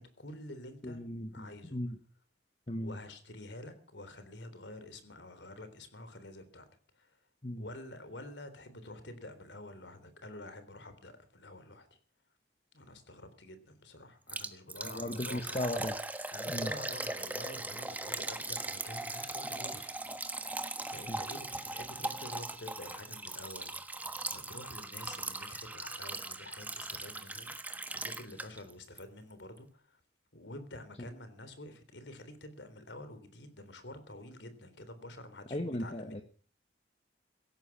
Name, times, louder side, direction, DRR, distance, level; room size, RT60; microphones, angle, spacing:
voice 1, 0.0-1.0 1.3-1.8 2.8-6.7 7.0-7.1 7.6-11.9 12.7-15.6 16.3-20.1 20.8-23.9 24.3-30.0 30.3-36.2, left 1 dB, 80° left, 11 dB, 3.5 m, -48 dB
voice 2, 0.8-2.0 2.7-3.0 7.4-7.6 14.8-15.9 16.5-16.7 21.1-21.2 31.0-31.1 35.5-36.2, left 1 dB, 35° left, 7 dB, 1.3 m, -37 dB
Liquid, 14.3-28.7 29.0-29.1 29.6-29.7, right 2 dB, 10° right, 1.3 m, -39 dB
17.0 x 13.5 x 5.9 m, 0.43 s
head